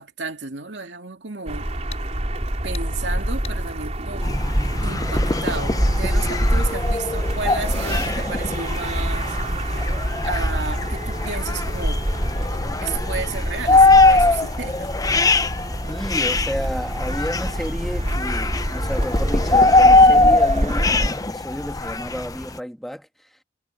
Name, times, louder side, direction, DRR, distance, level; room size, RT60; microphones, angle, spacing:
voice 1, 0.0-1.7 2.6-4.3 4.8-9.4 9.7-9.8 10.2-12.0 12.8-14.9, right 4 dB, 70° right, 2.5 m, -32 dB
sound 1, 0.7-0.8 1.9-2.1 2.7-2.9 3.4-3.6, left 8 dB, 35° left, 4.1 m, -39 dB
sound 2, 1.5-21.1, right 1 dB, 40° right, 3.6 m, -26 dB
sound 3, 4.2-22.6, left 2 dB, 20° left, 0.8 m, -21 dB
voice 2, 15.9-23.4, equal, ahead, 1.8 m, -32 dB
head